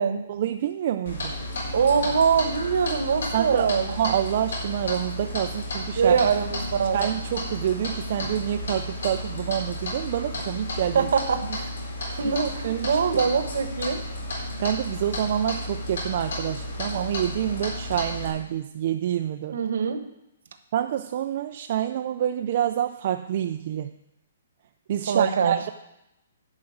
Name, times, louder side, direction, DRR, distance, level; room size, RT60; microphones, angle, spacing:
voice 1, 0.3-1.3 3.3-6.2 6.9-11.1 12.6-13.2 14.6-19.6 20.7-23.9 24.9-25.7, right 10 dB, 35° right, 7 dB, 0.3 m, -27 dB
Clock, 1.1-18.3, left 1 dB, 70° left, 3.8 m, -33 dB
voice 2, 1.7-3.9 6.0-7.0 10.9-11.7 12.1-14.0 19.5-20.0 25.1-25.7, right 6 dB, 55° right, 9 dB, 1.0 m, -23 dB
11.0 x 4.9 x 7.7 m, 0.86 s
hypercardioid pair, 180°, 0 cm